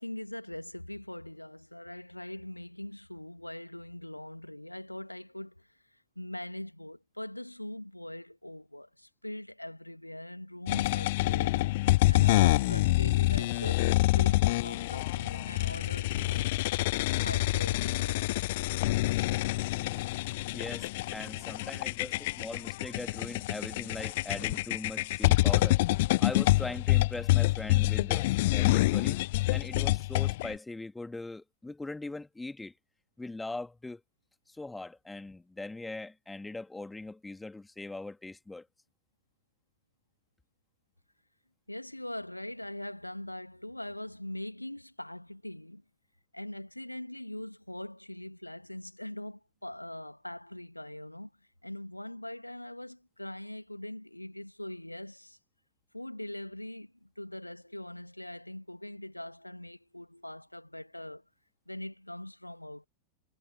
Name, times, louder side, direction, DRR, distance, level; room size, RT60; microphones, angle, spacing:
voice 1, 0.0-5.7 6.2-11.5 12.1-16.6 17.1-18.3 41.7-45.8 46.3-51.3 51.6-55.4 55.9-61.2 61.7-62.9, left 1 dB, 85° left, 2.2 m, -42 dB
sound 1, 10.7-30.5, left 19 dB, 50° left, 0.6 m, -27 dB
sound 2, 10.8-13.1, left 16 dB, 35° left, 3.8 m, -57 dB
voice 2, 19.7-20.0 20.5-25.8 26.2-29.2 29.5-32.7 33.2-34.0 34.5-38.7, left 2 dB, 5° left, 2.3 m, -41 dB
figure-of-eight pair, 90°, 0 cm